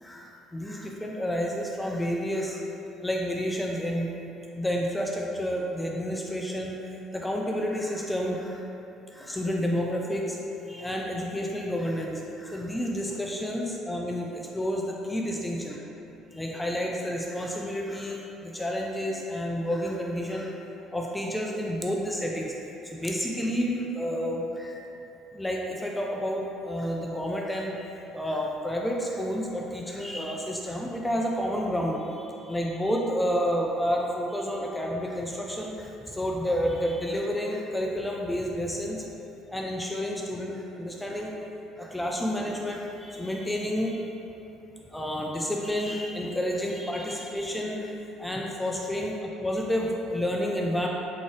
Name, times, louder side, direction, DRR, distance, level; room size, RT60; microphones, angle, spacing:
voice 1, 0.0-2.6 3.0-4.1 4.5-6.8 7.1-8.6 9.1-10.4 10.7-15.8 16.3-20.6 20.9-22.5 22.9-24.8 25.3-27.8 28.1-39.0 39.5-41.3 41.8-44.1 44.9-47.9 48.2-50.9, equal, 10° left, -1 dB, 0.4 m, -30 dB
3.6 x 2.5 x 3.2 m, 2.9 s
hypercardioid pair, 60°, 0 cm